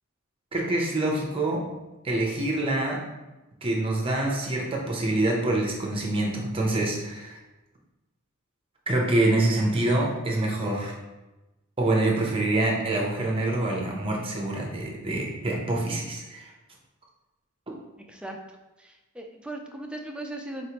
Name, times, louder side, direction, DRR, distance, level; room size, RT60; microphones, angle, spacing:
voice 1, 0.5-1.7 2.0-3.0 3.6-7.4 8.9-11.0 11.8-16.5, right 2 dB, 25° right, -1 dB, 0.7 m, -26 dB
voice 2, 18.8-20.7, right 1 dB, 5° right, 2 dB, 0.3 m, -38 dB
4.1 x 3.2 x 2.9 m, 1.1 s
head